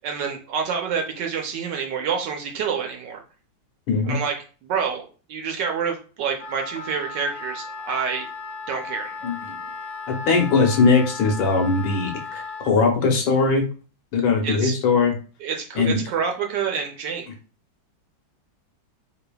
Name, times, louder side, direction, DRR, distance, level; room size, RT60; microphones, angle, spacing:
voice 1, 0.0-3.2 4.0-4.3 4.6-8.3 8.7-9.3 14.4-14.8 15.4-17.3, right 6 dB, 70° right, 2 dB, 1.2 m, -28 dB
voice 2, 3.9-4.2 9.2-9.4 10.1-13.7 14.1-15.1 15.8-16.0, left 4 dB, 75° left, 3 dB, 1.6 m, -20 dB
Wind instrument woodwind instrument, 6.4-12.7, left 4 dB, 50° left, 0.7 m, -36 dB
4.1 x 3.3 x 2.2 m, 0.37 s
omnidirectional pair, 2.2 m